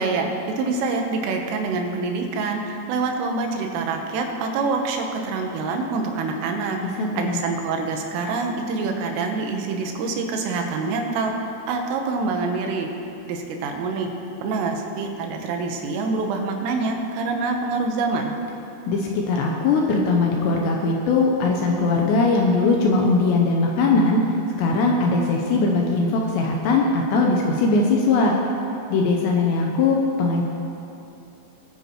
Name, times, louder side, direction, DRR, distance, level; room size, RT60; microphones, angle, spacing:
voice 1, 0.0-6.8 7.2-11.3 11.7-12.9 13.3-14.1 14.4-18.3, right 4 dB, 85° right, 3 dB, 3.6 m, -26 dB
voice 2, 7.0-7.4 18.9-24.2 24.6-28.3 28.9-30.4, left 3 dB, 80° left, 0 dB, 2.6 m, -20 dB
20.5 x 9.4 x 3.0 m, 2.8 s
omnidirectional pair, 5.7 m